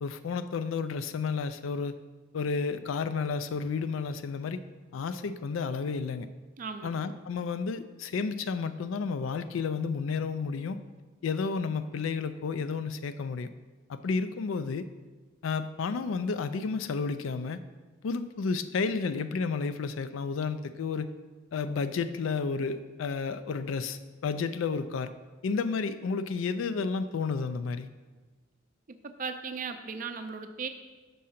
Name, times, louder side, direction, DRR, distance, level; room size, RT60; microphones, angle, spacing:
voice 1, 0.0-1.9 2.3-4.6 4.9-6.3 6.8-10.8 11.2-13.5 13.9-14.9 15.4-17.6 18.0-21.1 21.5-25.1 25.4-27.9, left 5 dB, 85° left, 11 dB, 0.4 m, -31 dB
voice 2, 6.6-6.9 29.0-30.7, right 5 dB, 45° right, 8 dB, 0.4 m, -37 dB
5.4 x 3.7 x 5.7 m, 1.3 s
head